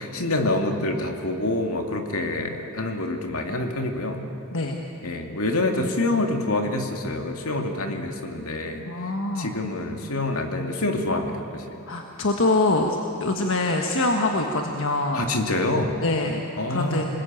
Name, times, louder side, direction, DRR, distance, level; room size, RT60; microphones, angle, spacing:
voice 1, 0.0-4.2 5.0-8.9 9.4-11.8 15.1-16.0 16.6-17.1, left 2 dB, 75° left, 4 dB, 2.4 m, -26 dB
voice 2, 8.8-9.5 11.9-15.2 16.0-16.4 16.7-17.0, left 2 dB, 60° left, 2 dB, 1.5 m, -24 dB
27.0 x 20.5 x 9.0 m, 2.9 s
head